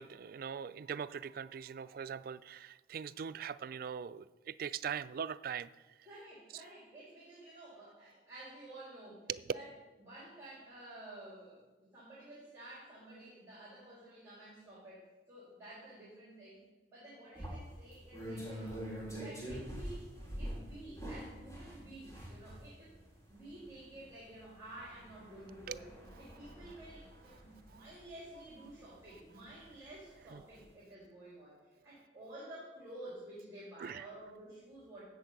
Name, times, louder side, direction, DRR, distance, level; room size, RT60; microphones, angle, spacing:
voice 1, 0.0-5.7 9.3-9.4 25.7-25.8 30.3-30.4 33.8-34.1, right 7 dB, 50° right, 14 dB, 0.3 m, -41 dB
voice 2, 6.1-9.7 10.0-11.6 11.9-15.0 15.3-16.6 16.9-18.9 19.1-20.1 20.4-23.0 23.3-25.9 26.2-35.0, right 1 dB, 15° right, -7 dB, 3.5 m, -51 dB
sound 1, 17.3-30.0 30.4-30.6, equal, 20° left, 3.8 m, -46 dB
13.5 x 4.5 x 8.1 m, 1.2 s
head